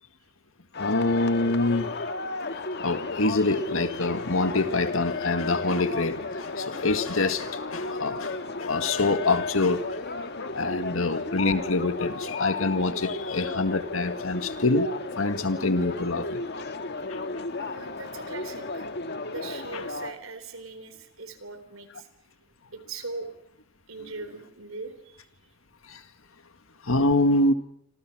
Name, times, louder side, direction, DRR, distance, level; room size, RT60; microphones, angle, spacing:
sound 1, 0.7-20.1, left 3 dB, 55° left, 1.7 m, -34 dB
voice 1, 0.8-1.9 2.5-9.9 10.4-16.4 17.1-17.4 25.9-26.0 26.8-27.5, left 2 dB, 80° left, 9 dB, 2.0 m, -26 dB
voice 2, 16.6-17.2 17.6-18.9 19.3-22.1 22.7-23.3 23.9-25.5, right 3 dB, 75° right, 10 dB, 3.8 m, -41 dB
28.5 x 26.0 x 6.2 m, 0.69 s
head